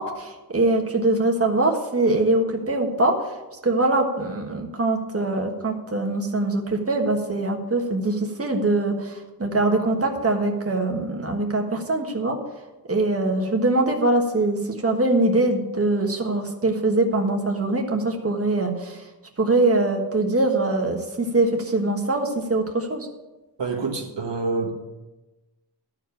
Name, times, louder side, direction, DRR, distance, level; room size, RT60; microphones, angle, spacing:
voice 1, 0.0-3.1 3.6-12.4 12.9-19.0 19.4-23.1, right 2 dB, 35° right, 2 dB, 1.5 m, -23 dB
voice 2, 23.6-24.7, right 4 dB, 85° right, 0 dB, 1.7 m, -27 dB
12.5 x 4.9 x 8.5 m, 1.1 s
wide cardioid pair, 85°, 42 cm